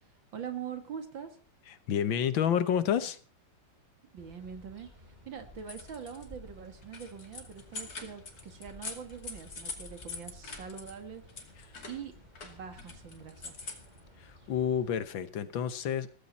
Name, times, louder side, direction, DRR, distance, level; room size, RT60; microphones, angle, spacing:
voice 1, 0.3-1.4 4.1-4.9 5.3-11.2 11.9-12.1 12.4-13.7, right 7 dB, 80° right, 2.9 m, -43 dB
voice 2, 1.7-3.2 14.2-16.1, left 9 dB, 85° left, 1.9 m, -29 dB
sound 1, 4.2-15.0, equal, 20° right, 4.0 m, -55 dB
sound 2, 5.5-6.3 6.6-11.0 11.3-14.0, left 4 dB, 50° left, 3.1 m, -44 dB
16.5 x 15.0 x 4.3 m
omnidirectional pair, 2.1 m